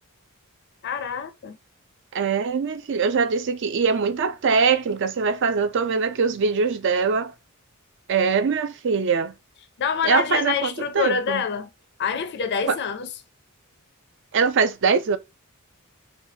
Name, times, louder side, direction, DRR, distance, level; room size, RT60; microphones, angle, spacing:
voice 1, 0.8-1.6 9.8-11.7 12.0-13.1, left 6 dB, 50° left, 0.4 m, -26 dB
voice 2, 2.1-7.3 8.1-9.3 10.0-11.4 12.7-12.8 14.3-15.2, right 5 dB, 55° right, 0.5 m, -22 dB
4.6 x 2.3 x 2.7 m
head